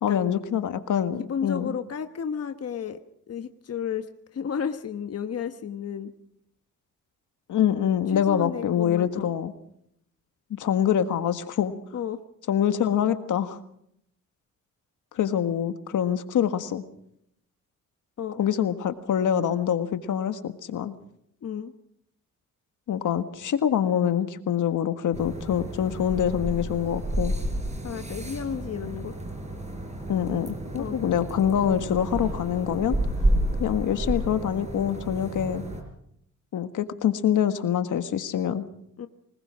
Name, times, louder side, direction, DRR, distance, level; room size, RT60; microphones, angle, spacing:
voice 1, 0.0-1.8 7.5-9.5 10.5-11.7 12.5-13.6 15.1-16.8 18.4-20.9 22.9-27.3 30.1-33.0 33.6-35.6 36.5-38.7, left 9 dB, 75° left, 9 dB, 1.7 m, -25 dB
voice 2, 1.2-3.0 3.3-4.1 4.3-6.1 8.1-9.3 11.9-12.2 18.2-18.4 21.4-21.7 27.8-29.1 30.8-31.2 39.0-39.1, left 7 dB, 50° left, 8 dB, 1.3 m, -32 dB
sound 1, 25.1-35.8, right 1 dB, 20° right, 5.3 m, -31 dB
23.5 x 21.0 x 6.3 m, 0.73 s
cardioid pair, 110°, 31 cm